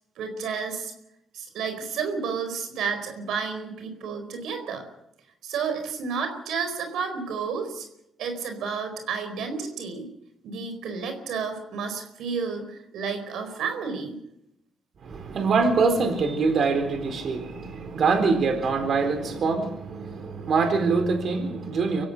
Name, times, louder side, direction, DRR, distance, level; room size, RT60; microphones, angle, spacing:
voice 1, 0.2-0.9 1.3-4.8 5.4-7.9 8.2-10.1 10.4-14.2, right 5 dB, 80° right, 6 dB, 4.4 m, -31 dB
voice 2, 15.0-22.1, right 4 dB, 55° right, 6 dB, 4.2 m, -24 dB
25.5 x 16.0 x 6.7 m, 0.81 s
cardioid pair, 90°, 0 cm